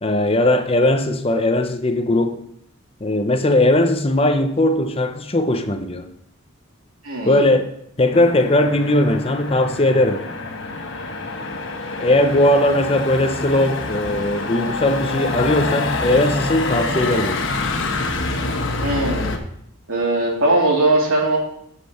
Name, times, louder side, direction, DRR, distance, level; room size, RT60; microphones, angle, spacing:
voice 1, 0.0-2.4 3.0-6.1 7.2-7.7 8.0-10.2 12.0-17.5, left 1 dB, 25° left, 8 dB, 0.7 m, -18 dB
voice 2, 7.0-7.4 18.8-19.2 19.9-21.4, right 2 dB, 85° right, -1 dB, 2.9 m, -19 dB
Motor vehicle (road), 8.1-19.4, left 3 dB, 60° left, 1.1 m, -26 dB
9.7 x 7.6 x 4.3 m, 0.73 s
head